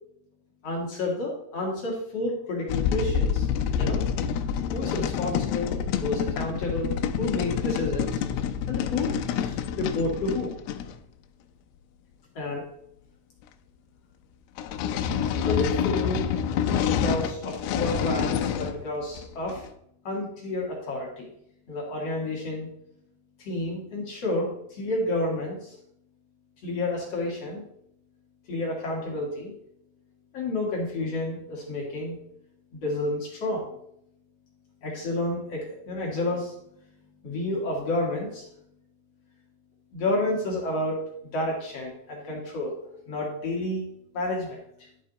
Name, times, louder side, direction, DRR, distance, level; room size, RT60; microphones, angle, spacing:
voice 1, 0.6-3.5 3.8-4.0 4.7-8.2 8.7-9.1 9.4-10.5 12.4-12.6 15.4-16.3 16.6-19.6 20.0-21.3 21.7-22.7 23.4-25.8 26.6-27.6 28.5-29.5 30.3-32.2 32.7-33.7 34.8-36.5 37.2-38.5 39.9-42.8 43.1-43.8 44.1-44.6, left 2 dB, 55° left, -2 dB, 1.9 m, -30 dB
sound 1, 2.7-11.0 14.6-18.8 19.1-19.7, left 8 dB, 85° left, 2.5 m, -27 dB
11.0 x 5.4 x 3.9 m, 0.75 s
omnidirectional pair, 4.7 m